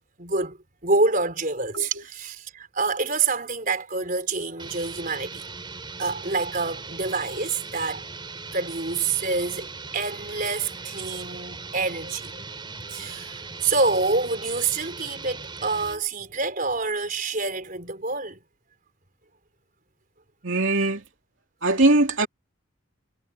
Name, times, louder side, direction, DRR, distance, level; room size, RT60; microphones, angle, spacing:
voice 1, 0.2-0.6 0.8-1.9 2.2-5.4 6.0-8.1 8.5-12.4 12.9-13.3 13.6-18.4, right 3 dB, 40° right, 4.8 m, -27 dB
sound 1, 4.6-16.0, right 4 dB, 20° right, 4.1 m, -39 dB
voice 2, 20.4-21.0 21.6-22.3, right 2 dB, 65° right, 2.9 m, -21 dB
head